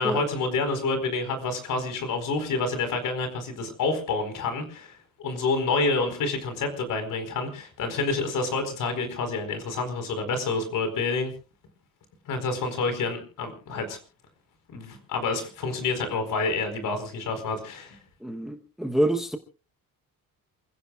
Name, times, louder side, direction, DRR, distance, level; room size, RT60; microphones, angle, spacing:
voice 1, 0.0-11.3 12.3-14.0 14.7-18.0, left 3 dB, 65° left, 4.5 m, -28 dB
voice 2, 18.2-19.4, right 1 dB, ahead, 0.9 m, -26 dB
28.0 x 16.0 x 2.4 m
cardioid pair, 180°, 34 cm